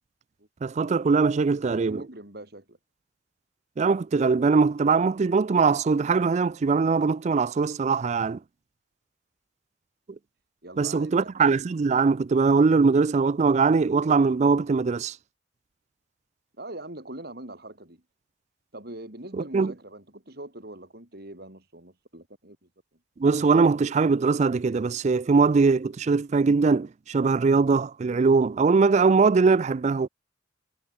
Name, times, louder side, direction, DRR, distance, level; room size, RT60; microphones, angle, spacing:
voice 1, 0.6-2.0 3.8-8.4 10.8-15.2 19.3-19.7 23.2-30.1, right 4 dB, 35° right, 0.4 m, -21 dB
voice 2, 1.6-2.8 10.6-11.4 16.6-18.0 18.7-22.7, right 1 dB, 55° right, 4.7 m, -42 dB
head